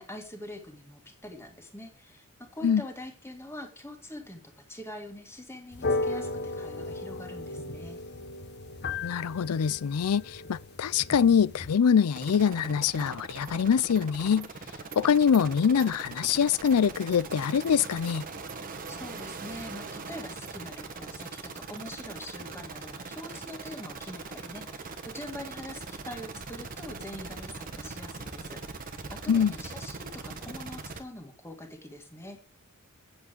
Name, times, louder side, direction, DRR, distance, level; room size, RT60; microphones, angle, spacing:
voice 1, 0.0-4.4 4.7-8.0 18.9-32.4, left 1 dB, 10° left, 2.0 m, -44 dB
sound 1, 5.7-11.7, left 2 dB, 50° left, 0.8 m, -35 dB
voice 2, 9.0-14.5 15.0-18.2 29.3-29.5, left 7 dB, 80° left, 0.4 m, -24 dB
sound 2, 12.1-31.0, right 4 dB, 40° right, 1.3 m, -41 dB
Animal, 13.0-13.1 13.4-13.5 14.0-14.1 14.4-14.5 14.9-15.0 15.3-15.4 15.8-15.9 16.2-16.3 16.7-16.8 17.1-17.2 17.6-17.7 18.1-18.2 18.5-18.6 18.9-19.3 19.6-19.7 20.0-20.1 20.4-20.5 20.9-21.0 21.4-21.5 21.8-21.9, right 12 dB, 55° right, 1.5 m, -49 dB
8.6 x 8.0 x 5.3 m
head